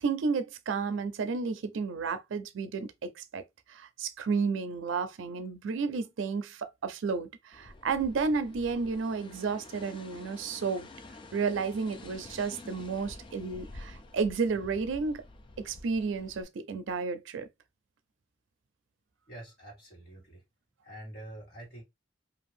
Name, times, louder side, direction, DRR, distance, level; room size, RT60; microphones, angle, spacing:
voice 1, 0.0-3.4 3.7-10.9 11.3-15.2 15.6-17.5, right 4 dB, 85° right, 0.4 m, -32 dB
sound 1, 7.5-16.4, left 2 dB, 25° left, 0.3 m, -49 dB
voice 2, 19.3-20.4 20.8-21.8, right 1 dB, 55° left, 1.4 m, -46 dB
2.6 x 2.4 x 3.1 m
head